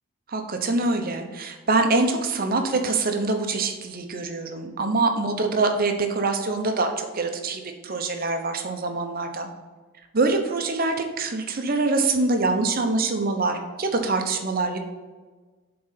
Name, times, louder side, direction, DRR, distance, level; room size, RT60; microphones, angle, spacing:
voice 1, 0.3-9.5 10.1-14.8, right 3 dB, 45° right, 5 dB, 0.8 m, -24 dB
7.7 x 3.9 x 5.7 m, 1.4 s
head